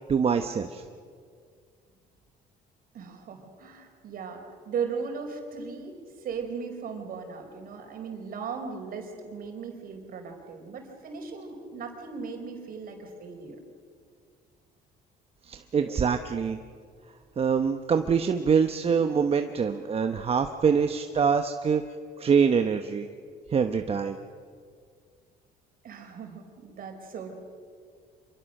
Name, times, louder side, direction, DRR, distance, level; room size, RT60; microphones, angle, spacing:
voice 1, 0.1-0.8 15.4-16.6 17.4-21.8 22.2-23.1 23.5-24.2, right 6 dB, 35° right, 7 dB, 0.9 m, -24 dB
voice 2, 2.9-13.6 25.8-27.3, right 5 dB, 60° right, 3 dB, 4.5 m, -37 dB
26.0 x 23.0 x 6.6 m, 2.1 s
cardioid pair, 110°, 17 cm